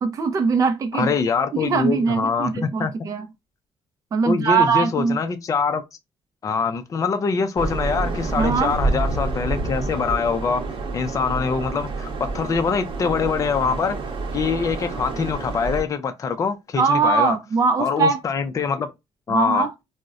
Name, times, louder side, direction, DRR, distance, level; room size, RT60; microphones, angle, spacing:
voice 1, 0.0-1.1 1.5-3.3 4.1-5.2 8.4-8.7 16.8-18.2 19.3-19.7, right 5 dB, 35° right, 0.4 m, -21 dB
voice 2, 1.0-2.9 4.2-5.8 6.4-10.6 10.9-14.0 14.3-17.4 17.8-18.9 19.3-19.7, left 5 dB, 35° left, 0.4 m, -24 dB
sound 1, 7.6-15.8, right 3 dB, 55° right, 0.8 m, -28 dB
3.8 x 2.1 x 2.3 m
cardioid pair, 110°, 10 cm